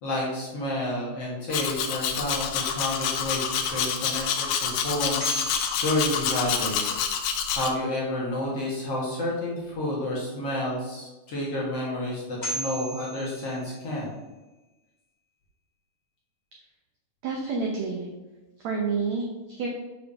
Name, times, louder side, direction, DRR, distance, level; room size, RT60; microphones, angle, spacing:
voice 1, 0.0-6.9 7.5-14.1, left 1 dB, 50° left, -5 dB, 2.1 m, -30 dB
Domestic sounds home sounds, 1.5-7.7, left 7 dB, 85° left, 1.6 m, -28 dB
sound 1, 5.2-7.1 12.0-12.1 12.4-14.3, right 1 dB, 25° left, 2.7 m, -37 dB
voice 2, 17.2-18.1 18.6-19.7, right 4 dB, 80° right, 0 dB, 1.6 m, -29 dB
7.1 x 4.5 x 5.4 m, 1.1 s
omnidirectional pair, 4.4 m